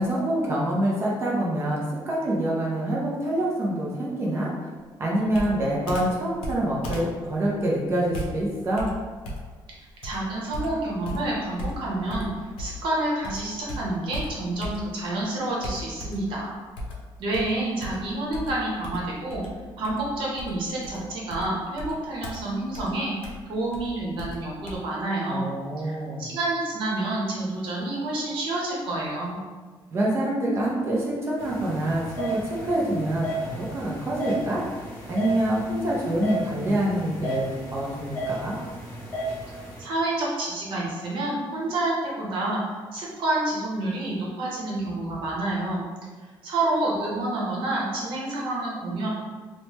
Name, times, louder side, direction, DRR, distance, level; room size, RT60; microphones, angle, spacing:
voice 1, 0.0-4.7 5.0-8.9 25.2-26.3 29.9-34.6 35.1-38.6, right 1 dB, 30° right, -4 dB, 0.4 m, -26 dB
Computer keyboard, 5.3-12.9 13.2-15.1 15.6-16.4 16.8-24.8, equal, 90° left, 0.6 m, -37 dB
voice 2, 10.0-12.3 12.6-16.5 17.2-19.4 19.8-23.1 23.5-25.5 25.8-29.4 39.8-45.8 46.4-49.1, right 2 dB, 70° right, -4 dB, 0.9 m, -28 dB
sound 1, 31.4-39.8, right 1 dB, 25° left, 1.0 m, -34 dB
3.1 x 2.1 x 3.0 m, 1.4 s
cardioid pair, 165°, 9 cm